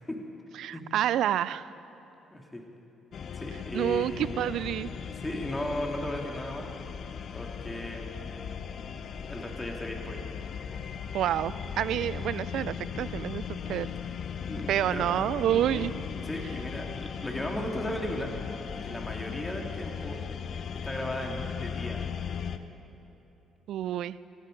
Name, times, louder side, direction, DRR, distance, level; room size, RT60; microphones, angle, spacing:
voice 1, 0.6-1.7 3.7-4.9 11.1-13.9 14.7-15.9 23.7-24.2, right 11 dB, 75° right, 18 dB, 0.4 m, -28 dB
voice 2, 2.3-2.6 3.3-4.5 5.0-6.7 7.3-8.1 9.3-10.3 14.4-15.1 15.4-15.9 16.2-18.3 18.8-20.2 20.8-22.0, left 1 dB, 15° left, 1 dB, 2.4 m, -36 dB
sound 1, 3.1-22.6, left 7 dB, 60° left, 0.7 m, -37 dB
18.0 x 15.5 x 5.2 m, 3.0 s
supercardioid pair, 70°, 0 cm